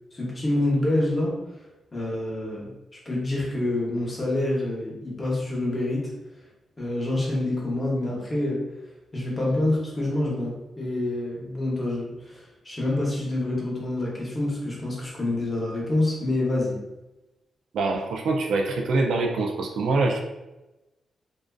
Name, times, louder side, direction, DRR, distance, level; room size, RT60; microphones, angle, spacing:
voice 1, 0.1-1.4 1.9-2.7 3.0-6.1 6.8-8.6 9.1-16.8, left 1 dB, 25° left, -4 dB, 0.8 m, -27 dB
voice 2, 17.7-20.2, right 3 dB, 85° right, 1 dB, 0.3 m, -24 dB
2.4 x 2.3 x 2.3 m, 1.0 s
cardioid pair, 100°, 0 cm